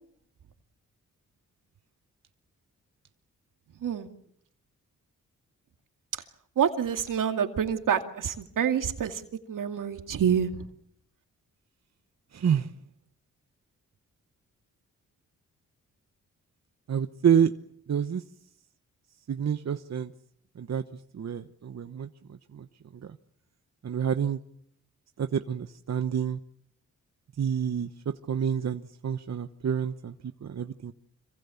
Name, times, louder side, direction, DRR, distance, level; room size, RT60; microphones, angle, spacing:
voice 1, 6.6-9.2 9.5-10.6, right 8 dB, 75° right, 7 dB, 2.4 m, -27 dB
voice 2, 12.3-12.7 16.9-17.5 17.9-18.2 19.3-20.1 20.6-20.8 21.1-22.1 22.5-22.6 23.8-24.4 25.2-26.4 27.4-27.9 28.3-30.9, right 8 dB, 55° right, 9 dB, 1.1 m, -28 dB
26.0 x 24.0 x 7.2 m, 0.68 s
cardioid pair, 70°, 32 cm